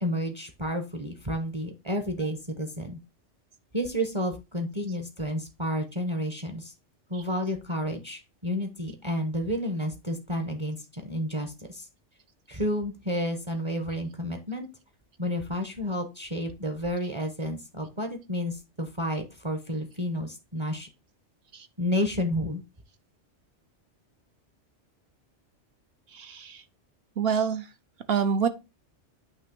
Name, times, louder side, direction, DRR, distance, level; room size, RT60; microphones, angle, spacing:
voice 1, 0.0-3.0 3.7-6.7 7.1-11.9 12.5-14.7 15.2-20.9 21.8-22.6, equal, 25° right, 0.9 m, -31 dB
voice 2, 26.2-26.6 27.2-27.6 28.1-28.5, right 6 dB, 60° right, 1.0 m, -25 dB
8.9 x 3.0 x 6.1 m
omnidirectional pair, 1.2 m